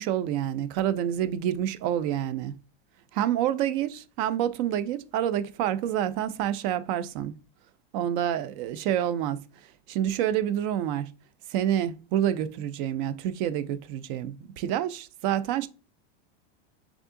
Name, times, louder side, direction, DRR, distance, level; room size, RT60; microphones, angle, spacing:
voice 1, 0.0-2.5 3.1-7.3 7.9-9.4 9.9-11.1 11.5-15.7, right 11 dB, 50° right, 0.5 m, -28 dB
3.6 x 3.5 x 3.6 m
supercardioid pair, 130°, 35 cm